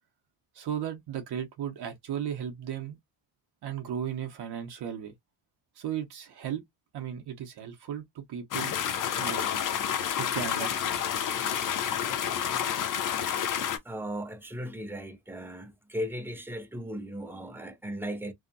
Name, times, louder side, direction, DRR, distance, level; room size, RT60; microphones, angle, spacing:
voice 1, 0.5-3.0 3.6-5.1 5.8-6.6 6.9-8.7 9.2-9.5 10.2-11.0, right 9 dB, 60° right, 0.7 m, -35 dB
sound 1, 8.5-13.8, left 9 dB, 45° left, 0.5 m, -29 dB
voice 2, 13.8-18.3, equal, 5° right, 0.5 m, -37 dB
2.7 x 2.1 x 2.5 m
cardioid pair, 100°, 44 cm